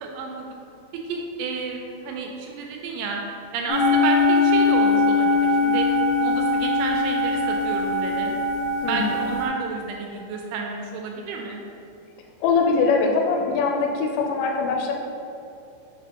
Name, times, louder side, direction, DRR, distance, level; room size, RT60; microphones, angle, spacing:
voice 1, 0.0-0.5 1.1-3.2 3.5-5.9 6.2-8.3 8.9-11.6, right 4 dB, 85° right, 1 dB, 2.9 m, -31 dB
sound 1, 3.7-9.5, left 2 dB, 65° left, 2.4 m, -21 dB
voice 2, 8.8-9.2 12.4-14.9, left 4 dB, 90° left, 1 dB, 3.1 m, -22 dB
6.6 x 5.0 x 2.8 m, 2.6 s
omnidirectional pair, 5.6 m